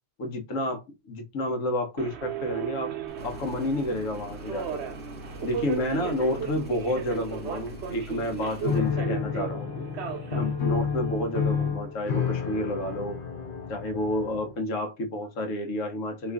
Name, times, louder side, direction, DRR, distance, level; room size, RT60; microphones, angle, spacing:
voice 1, 0.2-2.9 3.2-4.8 5.4-9.8 10.3-13.2 13.7-16.3, left 1 dB, 75° left, 1.2 m, -30 dB
Subway metro underground, 2.0-11.7, right 8 dB, 60° right, 0.9 m, -36 dB
Engine, 3.1-8.9, left 1 dB, 10° left, 0.5 m, -43 dB
Piano, 8.6-14.6, left 6 dB, 50° left, 0.7 m, -30 dB
3.0 x 2.5 x 3.4 m
omnidirectional pair, 1.4 m